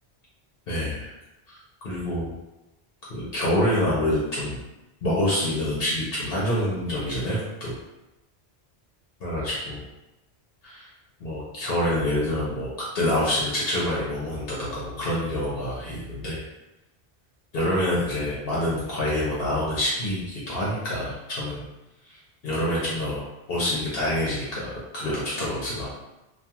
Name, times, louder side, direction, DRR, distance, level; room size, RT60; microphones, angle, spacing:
voice 1, 0.7-1.1 1.8-2.3 3.1-4.6 5.0-7.7 9.2-9.8 10.6-10.9 11.2-12.7 12.9-16.4 17.5-21.6 22.1-22.2 22.4-23.2 23.5-25.9, left 1 dB, 65° left, -6 dB, 0.9 m, -26 dB
2.4 x 2.3 x 2.8 m, 0.99 s
omnidirectional pair, 1.1 m